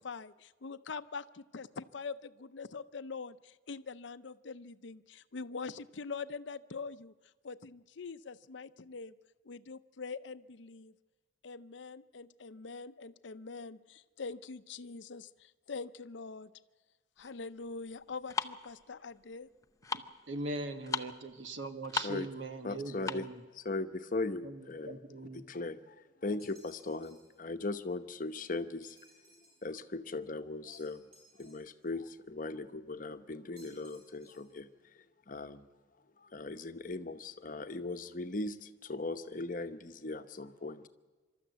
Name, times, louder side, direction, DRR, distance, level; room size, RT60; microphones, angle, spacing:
voice 1, 0.0-7.1 7.4-9.1 9.4-10.9 11.4-16.5 17.2-19.5, left 4 dB, 70° left, 14 dB, 0.6 m, -44 dB
sound 1, 17.2-23.4, left 4 dB, 15° left, 0.6 m, -40 dB
voice 2, 20.3-23.4 24.4-25.4, right 2 dB, 75° right, 8 dB, 1.5 m, -40 dB
voice 3, 22.6-23.3 23.5-25.0 25.3-29.0 29.6-31.0 31.4-34.7 34.9-35.7 36.2-40.9, left 2 dB, 45° left, 9 dB, 0.9 m, -39 dB
sound 2, 26.4-27.4 28.8-29.7 30.7-31.9 33.6-34.6, right 1 dB, 55° right, 7.6 m, -62 dB
25.5 x 13.0 x 8.1 m, 1.4 s
head